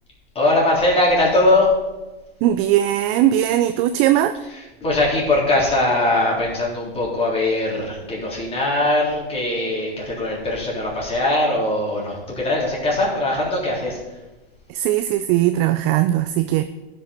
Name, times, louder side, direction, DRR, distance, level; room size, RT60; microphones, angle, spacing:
voice 1, 0.3-1.7 4.8-14.0, left 1 dB, 20° left, -4 dB, 3.4 m, -20 dB
voice 2, 2.4-4.4 14.7-16.6, right 13 dB, 30° right, 10 dB, 0.4 m, -19 dB
14.0 x 5.4 x 4.2 m, 1.1 s
hypercardioid pair, 115°, 30 cm